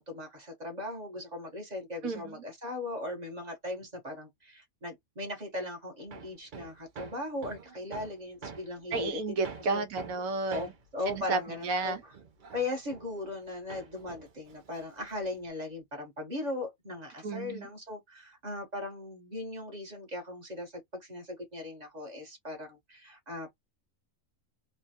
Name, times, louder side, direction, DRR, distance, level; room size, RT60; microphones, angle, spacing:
voice 1, 0.0-9.8 10.5-12.1 12.5-20.7 21.0-23.5, left 2 dB, 35° right, 1.0 m, -38 dB
voice 2, 2.0-2.4 8.9-10.7 11.1-12.0 17.2-17.7, right 3 dB, 80° right, 1.2 m, -32 dB
Hammer, 6.1-13.4 13.7-15.5, right 5 dB, 55° right, 0.5 m, -47 dB
3.2 x 2.2 x 2.7 m
omnidirectional pair, 1.5 m